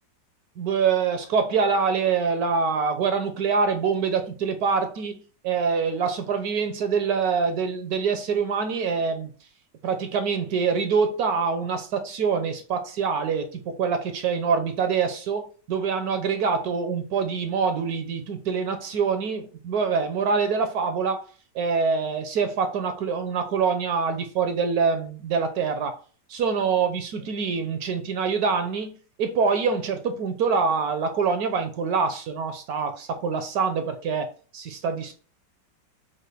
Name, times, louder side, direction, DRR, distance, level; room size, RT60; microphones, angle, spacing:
voice 1, 0.6-9.3 9.8-21.3 21.5-26.0 26.3-28.9 29.2-35.1, right 5 dB, 70° right, 0.9 m, -25 dB
5.3 x 2.2 x 3.2 m
omnidirectional pair, 1.9 m